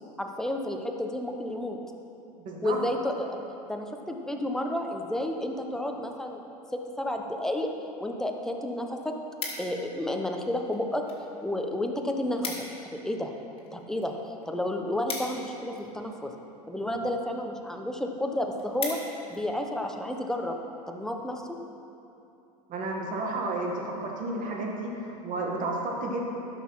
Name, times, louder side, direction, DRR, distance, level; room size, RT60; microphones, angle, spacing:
voice 1, 0.2-1.8 2.6-3.4 3.7-6.4 6.7-7.7 8.0-9.1 9.6-11.0 11.4-12.6 12.8-13.3 13.7-14.1 14.5-16.3 16.7-19.0 19.3-20.6 20.9-21.6, left 1 dB, ahead, 3 dB, 1.0 m, -31 dB
voice 2, 2.4-2.8 22.7-26.2, right 2 dB, 40° right, 0 dB, 1.8 m, -32 dB
sound 1, 8.2-8.3 8.6-10.0 10.7-11.2 11.5-11.6 11.9-12.0 12.2-12.8 13.2-16.0 16.8-17.1 17.6-17.7 18.0-18.1 18.4-19.4 19.9-20.1, left 4 dB, 25° left, 2.3 m, -38 dB
11.5 x 6.4 x 5.7 m, 2.8 s
hypercardioid pair, 90°, 21 cm